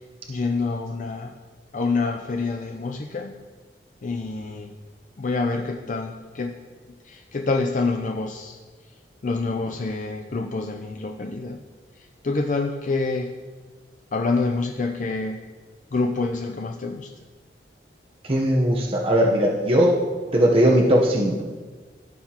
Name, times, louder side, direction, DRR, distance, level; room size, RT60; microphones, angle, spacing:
voice 1, 0.3-1.3 1.7-3.4 4.0-4.7 5.2-6.6 7.0-8.6 9.2-11.6 12.0-13.3 14.1-15.4 15.9-17.1, left 3 dB, 45° left, 3 dB, 0.5 m, -27 dB
voice 2, 18.2-19.9 20.3-21.4, equal, 35° right, -2 dB, 0.8 m, -19 dB
16.0 x 5.8 x 2.9 m, 1.4 s
head